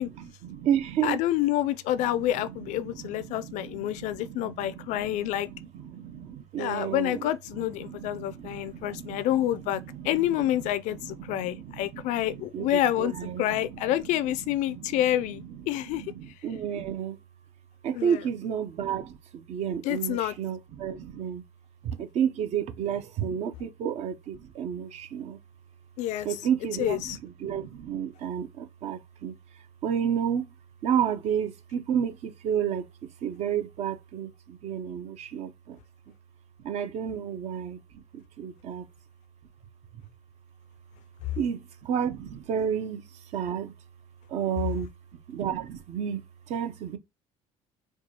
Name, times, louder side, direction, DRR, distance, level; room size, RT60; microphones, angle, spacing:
voice 1, 0.0-1.2 1.9-14.0 14.4-15.1 15.4-17.2 17.8-21.4 21.8-25.4 26.2-29.3 29.8-30.4 30.8-32.9 33.2-35.8 36.6-38.8 41.4-43.0 43.3-43.7 44.3-44.9 45.3-47.0, right 8 dB, 60° right, 0.7 m, -32 dB
voice 2, 1.0-5.5 6.6-16.0 17.9-18.2 19.8-20.3 26.0-26.3 26.8-27.2, left 13 dB, 70° left, 0.4 m, -28 dB
4.6 x 2.3 x 2.8 m
cardioid pair, 130°, 13 cm